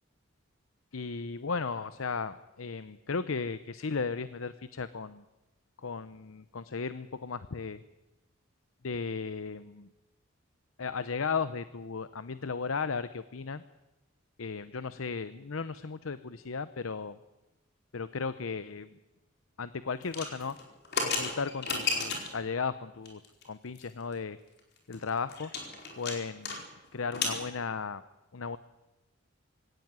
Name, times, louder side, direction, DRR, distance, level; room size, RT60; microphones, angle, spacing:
voice 1, 0.9-5.2 5.8-7.8 8.8-9.9 10.8-13.6 14.4-17.2 17.9-18.9 19.6-20.6 21.0-23.2 23.4-24.4 24.9-25.5 26.0-26.6 26.9-28.0 28.3-28.6, left 5 dB, 80° left, 14 dB, 0.7 m, -35 dB
sound 1, 20.0-22.4 23.1-23.4 23.8-23.9 24.1-24.2 24.6-26.6 26.8-27.4, left 4 dB, 50° left, 4.6 m, -33 dB
22.5 x 17.0 x 9.5 m, 1.0 s
head